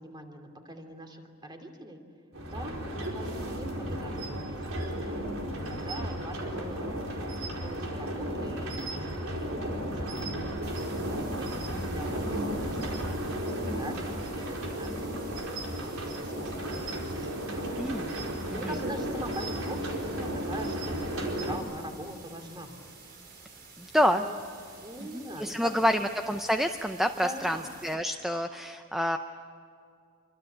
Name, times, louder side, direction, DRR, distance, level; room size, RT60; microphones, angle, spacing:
voice 1, 0.0-2.0 2.5-5.3 5.7-10.3 10.7-17.3 17.6-22.8 23.2-23.3 24.1-24.4 24.8-26.0 27.1-27.7, right 1 dB, 20° right, 4 dB, 2.8 m, -43 dB
sound 1, 2.3-21.6, right 1 dB, 70° right, 4.8 m, -34 dB
sound 2, 10.6-28.0, right 4 dB, 50° right, 4.8 m, -51 dB
voice 2, 17.8-18.1 18.5-18.6 23.8-24.3 25.1-29.2, equal, ahead, 6 dB, 0.6 m, -28 dB
27.0 x 25.0 x 8.1 m, 2.4 s
head